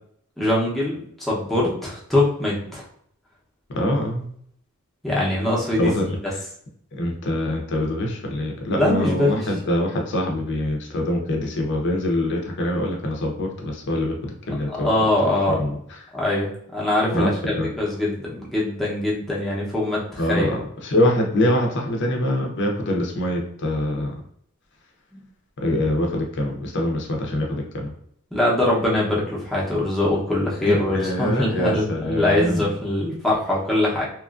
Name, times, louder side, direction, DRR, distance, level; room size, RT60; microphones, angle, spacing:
voice 1, 0.4-2.9 5.0-6.1 8.7-9.5 14.5-15.7 16.1-20.5 25.1-25.2 28.3-34.0, left 1 dB, ahead, -6 dB, 0.7 m, -23 dB
voice 2, 3.7-4.3 5.8-6.0 7.0-14.9 15.5-15.8 17.1-17.7 20.2-24.1 25.6-27.9 30.6-32.7, left 1 dB, 55° left, 1 dB, 0.6 m, -24 dB
2.9 x 2.4 x 2.4 m, 0.67 s
head